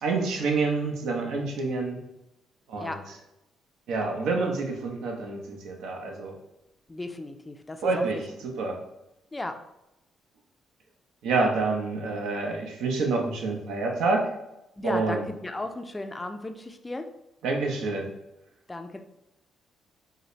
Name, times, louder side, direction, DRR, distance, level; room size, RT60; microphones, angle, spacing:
voice 1, 0.0-2.0 2.7-3.0 3.9-6.3 7.8-8.8 11.2-14.3 14.8-15.2 17.4-18.1, right 3 dB, 85° right, 1 dB, 0.6 m, -27 dB
voice 2, 6.9-8.2 9.3-9.6 14.8-17.1 18.7-19.0, left 2 dB, 20° left, 6 dB, 0.3 m, -35 dB
3.9 x 2.1 x 3.0 m, 0.90 s
cardioid pair, 90°, 0 cm